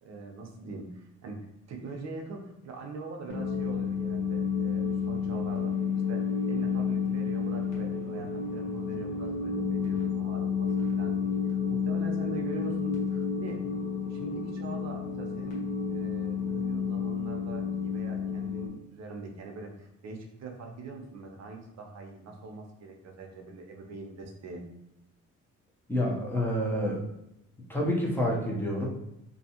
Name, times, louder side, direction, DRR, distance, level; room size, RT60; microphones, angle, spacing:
voice 1, 0.0-5.7 6.1-13.6 14.1-24.6, right 3 dB, 60° right, 2 dB, 0.7 m, -43 dB
sound 1, 3.3-18.7, left 6 dB, 65° left, 1.0 m, -30 dB
voice 2, 25.9-27.0 27.7-28.9, equal, 5° left, -3 dB, 0.8 m, -28 dB
2.6 x 2.3 x 2.8 m, 0.85 s
cardioid pair, 90°, 30 cm